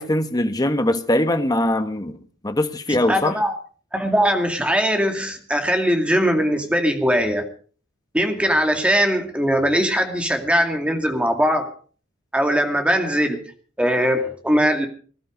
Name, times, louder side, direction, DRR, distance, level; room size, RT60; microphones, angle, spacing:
voice 1, 0.0-2.2 2.4-3.4, left 1 dB, 20° left, 1.2 m, -21 dB
voice 2, 3.1-3.5 3.9-7.5 8.1-11.7 12.3-13.4 13.8-14.9, equal, 5° right, 2.3 m, -20 dB
19.5 x 12.5 x 5.1 m
head